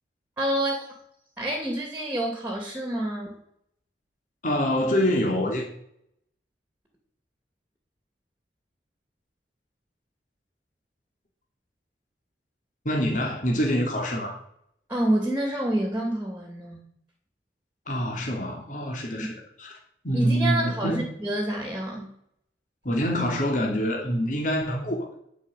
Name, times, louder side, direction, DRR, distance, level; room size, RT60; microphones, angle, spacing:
voice 1, 0.4-0.8 1.4-3.3 14.9-16.8 19.1-19.3 20.1-22.1, right 1 dB, 10° right, 2 dB, 2.5 m, -28 dB
voice 2, 4.4-5.6 12.8-14.4 17.9-19.8 20.0-21.1 22.8-25.2, equal, 45° left, 0 dB, 2.8 m, -26 dB
11.0 x 6.2 x 9.2 m, 0.70 s
head